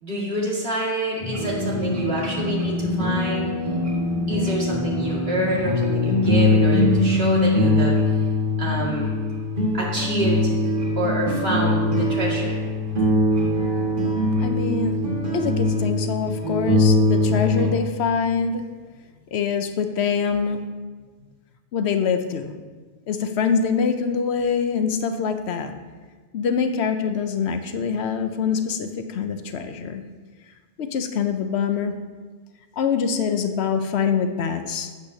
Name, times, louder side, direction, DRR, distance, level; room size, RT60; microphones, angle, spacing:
voice 1, 0.0-3.5 4.3-8.2 8.6-9.1 9.7-10.5 11.0-12.6, right 1 dB, 70° right, -4 dB, 2.2 m, -27 dB
sound 1, 1.2-17.7, left 2 dB, 50° right, 1.8 m, -22 dB
voice 2, 14.4-15.0 15.3-18.6 19.3-20.6 21.7-22.5 23.1-25.7 26.3-30.0 30.8-31.9 32.8-34.9, left 6 dB, 80° left, 8 dB, 0.9 m, -24 dB
11.5 x 8.2 x 2.7 m, 1.4 s
omnidirectional pair, 1.1 m